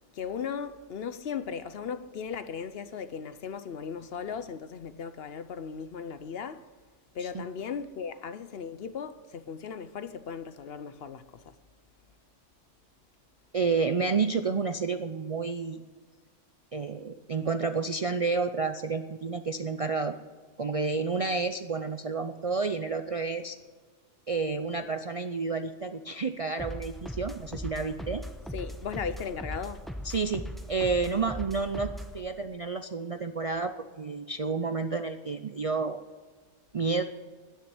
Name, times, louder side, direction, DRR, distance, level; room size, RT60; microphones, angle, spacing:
voice 1, 0.1-6.6 7.1-11.5 28.5-29.9, left 6 dB, 60° left, 0.8 m, -37 dB
voice 2, 13.5-15.8 16.7-20.2 20.6-23.6 24.3-28.2 30.0-36.0 36.7-37.0, right 4 dB, 50° right, 0.4 m, -30 dB
sound 1, 26.6-32.2, equal, ahead, 0.8 m, -39 dB
10.0 x 10.0 x 9.5 m
omnidirectional pair, 1.3 m